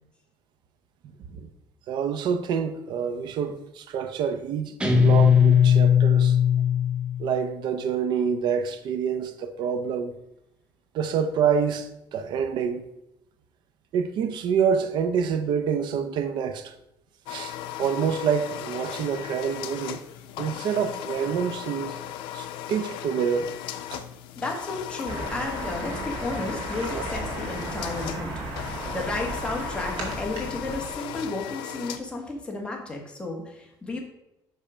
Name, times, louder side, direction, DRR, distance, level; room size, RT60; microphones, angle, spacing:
voice 1, 1.9-6.4 7.2-10.1 10.9-12.9 13.9-16.7 17.3-20.0 20.4-22.0 22.3-23.5 23.9-24.0 26.9-27.0, right 7 dB, 65° right, 0.7 m, -27 dB
Guitar, 4.8-7.4, left 8 dB, 10° right, 0.8 m, -18 dB
sound 1, 17.3-32.0, left 11 dB, 90° left, 0.6 m, -37 dB
voice 2, 24.4-34.0, left 2 dB, 10° left, 1.6 m, -33 dB
sound 2, 25.1-30.9, right 2 dB, 85° right, 2.1 m, -35 dB
5.8 x 5.5 x 4.9 m
cardioid pair, 135°, 8 cm